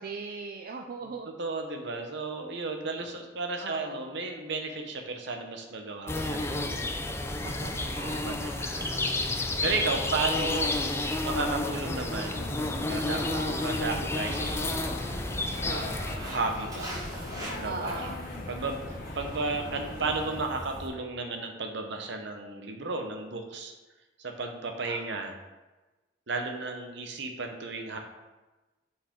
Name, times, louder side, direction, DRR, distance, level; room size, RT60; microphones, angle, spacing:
voice 1, 0.0-1.3 3.6-4.1 7.4-8.2 13.3-13.8 17.6-18.2 24.9-25.1, right 4 dB, 50° right, 2 dB, 0.4 m, -39 dB
voice 2, 1.4-6.7 8.0-10.7 11.2-12.6 12.9-15.0 15.7-18.1 18.5-23.7 24.2-25.4 26.3-28.0, right 3 dB, 65° right, 4 dB, 0.9 m, -34 dB
sound 1, 6.1-16.2, left 2 dB, 15° left, 0.5 m, -31 dB
sound 2, 12.1-20.5, left 2 dB, 50° left, 0.7 m, -42 dB
Walk footsteps, 13.8-20.9, equal, 20° right, 1.5 m, -41 dB
7.2 x 4.7 x 3.7 m, 1.1 s
head